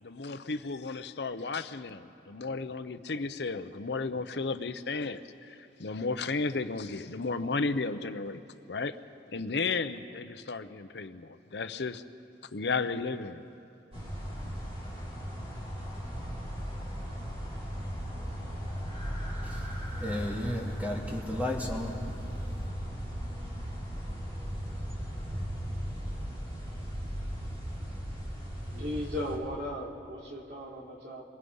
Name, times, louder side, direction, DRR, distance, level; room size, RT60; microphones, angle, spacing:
voice 1, 0.0-8.4 8.7-8.9 9.3-12.0 12.5-13.4, left 4 dB, 70° left, 11 dB, 0.8 m, -33 dB
sound 1, 13.9-29.4, equal, 35° right, 5.4 m, -37 dB
voice 2, 19.4-19.7 20.0-22.0, left 1 dB, 10° right, -2 dB, 2.5 m, -34 dB
voice 3, 28.6-31.2, left 1 dB, 65° right, -2 dB, 3.3 m, -37 dB
28.5 x 23.5 x 5.5 m, 2.7 s
head